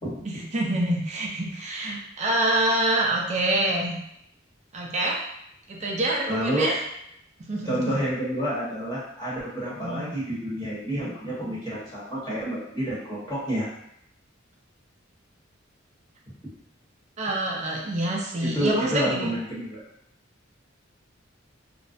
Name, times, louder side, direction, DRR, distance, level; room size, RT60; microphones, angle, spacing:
voice 1, 0.2-4.0 4.7-5.3 5.7-6.8 7.4-8.0 9.8-10.1 17.2-19.3, right 1 dB, 35° right, -2 dB, 0.5 m, -26 dB
voice 2, 6.3-6.7 7.6-13.7 18.4-19.8, right 1 dB, 20° left, -9 dB, 0.9 m, -29 dB
2.4 x 2.0 x 2.5 m, 0.74 s
head